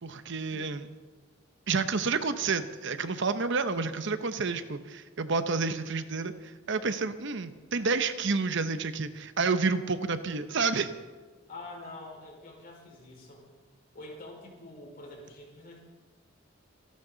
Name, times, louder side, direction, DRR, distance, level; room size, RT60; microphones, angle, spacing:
voice 1, 0.0-0.9 1.7-10.9, right 4 dB, 65° right, 10 dB, 0.9 m, -29 dB
voice 2, 11.5-13.4 13.9-15.8, left 2 dB, 45° left, -1 dB, 5.1 m, -46 dB
26.0 x 12.0 x 3.9 m, 1.4 s
head